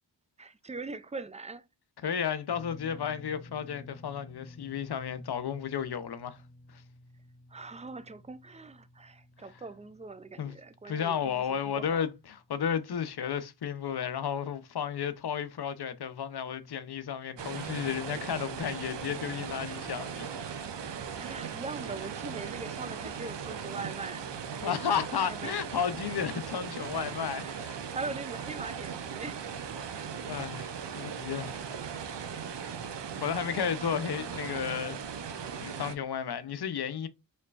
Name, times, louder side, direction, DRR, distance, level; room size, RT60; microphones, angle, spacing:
voice 1, 0.4-1.6 7.5-12.0 21.1-24.8 25.3-25.6 27.3-29.7 32.7-32.9, right 3 dB, 15° right, 0.5 m, -42 dB
voice 2, 2.0-6.4 6.7-6.8 10.4-10.5 10.9-20.7 24.6-27.8 29.8-30.0 30.3-31.6 33.2-35.0 35.3-37.1, left 8 dB, 60° left, 0.7 m, -33 dB
sound 1, 2.5-14.7 15.0-15.2 16.9-17.0, left 2 dB, 15° left, 0.7 m, -53 dB
sound 2, 17.4-35.9, right 7 dB, 70° right, 0.8 m, -38 dB
4.3 x 3.2 x 2.4 m
cardioid pair, 50°, 43 cm